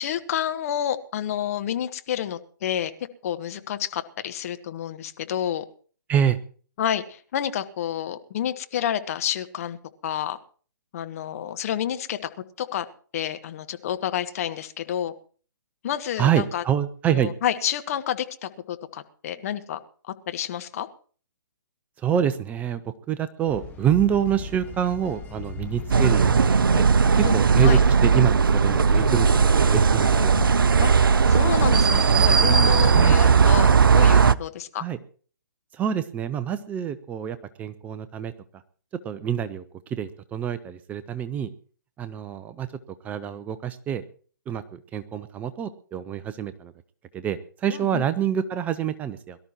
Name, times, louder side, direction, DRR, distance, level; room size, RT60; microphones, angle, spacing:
voice 1, 0.0-2.9 3.2-5.6 6.8-9.8 10.0-10.4 10.9-12.3 12.6-12.8 13.1-15.1 15.8-16.6 17.1-19.8 20.0-20.9 27.2-27.3 27.6-27.8 30.8-30.9 31.3-34.8 47.7-48.0, left 10 dB, 40° left, 9 dB, 1.3 m, -29 dB
voice 2, 16.2-17.3 22.0-26.9 27.1-30.3 32.9-33.2 34.7-35.0 35.7-38.6 39.0-41.5 42.0-42.7 43.0-44.1 44.5-46.7 47.1-49.4, right 9 dB, 15° right, 12 dB, 0.6 m, -27 dB
sound 1, 23.5-30.6, left 6 dB, 15° left, 1.4 m, -37 dB
sound 2, 25.9-34.3, right 5 dB, 75° right, 0.6 m, -17 dB
22.5 x 12.5 x 3.0 m, 0.42 s
figure-of-eight pair, 135°, 12 cm